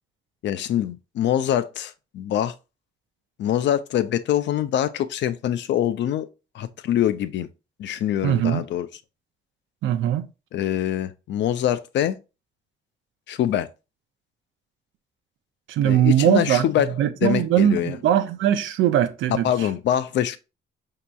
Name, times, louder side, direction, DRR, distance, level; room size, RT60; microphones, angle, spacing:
voice 1, 0.4-2.5 3.4-6.3 6.5-7.5 7.8-8.9 10.5-12.2 13.3-13.7 15.8-16.9 17.2-18.0 19.3-20.4, left 11 dB, 65° left, 0.4 m, -24 dB
voice 2, 8.2-8.6 9.8-10.3 15.7-16.6 17.0-19.4, right 11 dB, 75° right, 0.5 m, -20 dB
5.0 x 2.8 x 2.3 m
cardioid pair, 90°, 20 cm